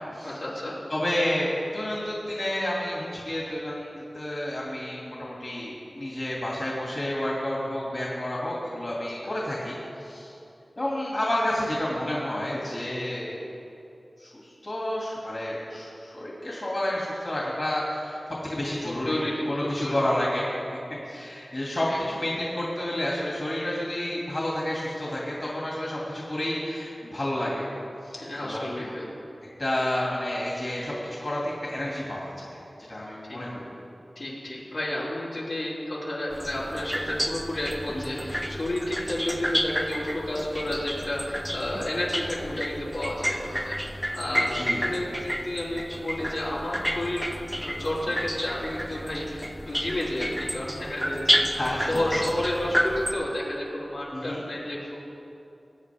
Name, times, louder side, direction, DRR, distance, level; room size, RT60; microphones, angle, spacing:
voice 1, 0.2-0.7 9.2-9.3 18.8-20.0 21.9-22.0 28.1-29.1 33.3-33.4 34.1-55.1, left 1 dB, 75° left, -8 dB, 3.4 m, -31 dB
voice 2, 0.9-9.8 10.0-10.3 10.8-13.3 14.2-14.3 14.6-19.2 19.5-20.5 21.1-27.7 28.0-28.1 28.4-28.9 29.6-32.6 32.9-33.7 37.9-38.2 44.5-44.9 51.5-52.0 54.1-54.4, left 1 dB, 45° left, -5 dB, 2.5 m, -30 dB
sound 1, 36.3-53.1, equal, ahead, 0.8 m, -30 dB
20.5 x 9.1 x 3.6 m, 2.8 s
wide cardioid pair, 60°, 0 cm